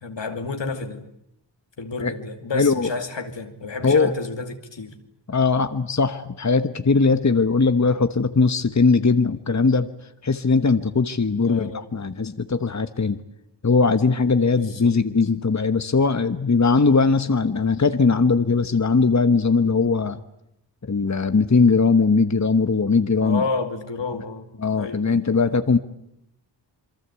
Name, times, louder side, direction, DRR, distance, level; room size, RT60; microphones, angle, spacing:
voice 1, 0.0-1.1 1.8-4.9 11.4-11.8 14.5-14.9 23.2-24.4 24.8-25.2, left 3 dB, 80° left, 5 dB, 2.6 m, -30 dB
voice 2, 2.5-2.9 3.8-4.1 5.3-9.9 10.2-13.2 13.6-20.2 20.8-23.4 24.6-25.8, left 4 dB, 40° left, 10 dB, 1.2 m, -20 dB
27.5 x 23.0 x 8.3 m, 0.80 s
cardioid pair, 50°, 43 cm